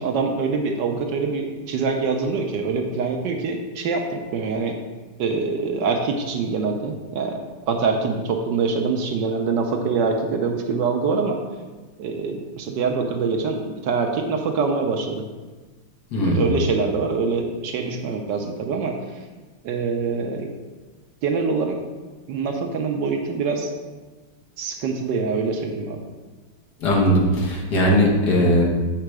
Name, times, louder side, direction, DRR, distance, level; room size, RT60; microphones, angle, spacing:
voice 1, 0.0-4.7 5.2-7.4 7.7-11.4 12.0-15.2 16.2-19.0 19.6-20.5 21.2-21.8 22.3-23.7 24.6-26.0, right 4 dB, 70° right, 3 dB, 1.1 m, -24 dB
voice 2, 16.1-16.5 26.8-28.7, equal, 55° left, -2 dB, 1.6 m, -19 dB
7.6 x 3.8 x 4.7 m, 1.3 s
omnidirectional pair, 2.3 m